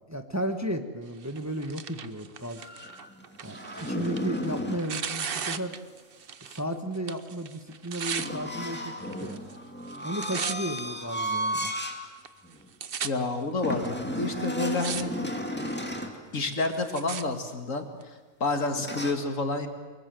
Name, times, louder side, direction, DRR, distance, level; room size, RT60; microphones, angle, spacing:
voice 1, 0.1-2.7 3.4-5.7 6.5-8.9 9.2-9.4 10.0-11.7, right 1 dB, 10° right, 6 dB, 1.3 m, -34 dB
Tearing, 1.2-6.7 6.9-8.3 9.0-9.6 9.8-10.8 11.4-11.5 12.3-12.4 12.5-13.1 13.9-14.0 14.4-15.0 15.3-15.8 16.4-17.2 18.0-18.1, right 7 dB, 45° right, 1.0 m, -36 dB
sound 1, 2.6-4.9 8.2-12.0 12.5-12.6 13.6-16.2 18.8-19.1, equal, 5° left, 2.3 m, -33 dB
voice 2, 13.0-15.1 16.3-17.8 18.4-19.7, left 3 dB, 70° left, 6 dB, 2.5 m, -29 dB
24.5 x 22.5 x 7.8 m, 1.4 s
omnidirectional pair, 1.4 m